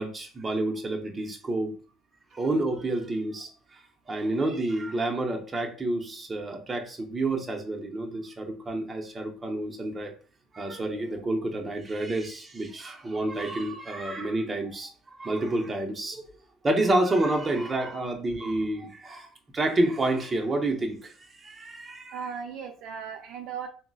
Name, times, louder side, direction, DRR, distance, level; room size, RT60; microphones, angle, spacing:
voice 1, 0.0-1.7 2.3-3.8 4.1-10.1 10.5-16.3 16.6-19.3 19.5-22.2, right 2 dB, 25° right, 0.7 m, -29 dB
voice 2, 22.1-23.7, right 6 dB, 70° right, 0.4 m, -37 dB
3.8 x 2.0 x 2.3 m
supercardioid pair, 90°, 0 cm